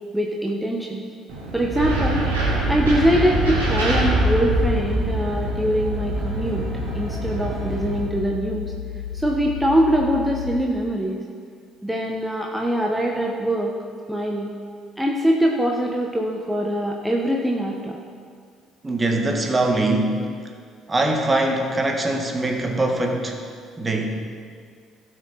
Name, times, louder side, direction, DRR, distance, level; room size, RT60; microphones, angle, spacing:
voice 1, 0.1-1.0 1.5-2.3 2.7-6.7 6.9-8.7 9.1-11.2 11.8-13.7 14.1-14.5 15.0-18.0, equal, 5° right, -1 dB, 1.2 m, -23 dB
Aircraft, 1.3-8.0, right 3 dB, 60° right, 2.3 m, -30 dB
sound 1, 1.7-5.4, right 1 dB, 80° right, 2.5 m, -23 dB
sound 2, 3.8-10.6, left 8 dB, 75° left, 0.6 m, -33 dB
voice 2, 18.8-20.3 20.9-23.4 23.8-24.1, right 2 dB, 25° right, 2 dB, 1.7 m, -22 dB
16.5 x 6.3 x 4.3 m, 2.1 s
figure-of-eight pair, 50°, 0 cm